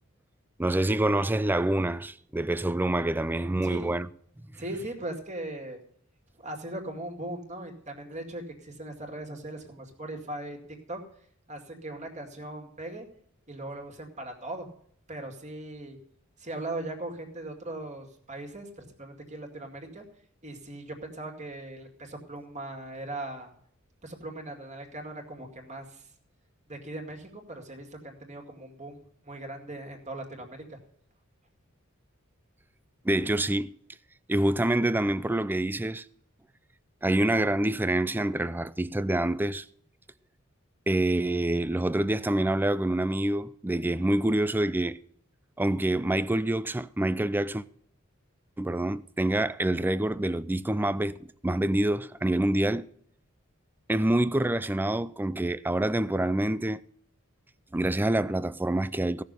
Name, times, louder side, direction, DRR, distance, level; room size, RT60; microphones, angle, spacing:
voice 1, 0.6-4.1 33.0-33.8 34.3-36.1 37.0-39.7 40.9-45.0 45.6-47.6 48.6-51.2 51.4-52.9 53.9-56.8 57.7-59.2, right 1 dB, 10° right, 0.4 m, -26 dB
voice 2, 3.6-4.0 4.6-5.8 6.4-10.6 10.9-11.0 11.5-13.1 13.5-14.7 15.1-16.0 16.4-20.0 20.4-23.5 24.0-26.1 26.7-30.8, right 1 dB, 35° right, 2.3 m, -39 dB
16.5 x 6.6 x 6.8 m
head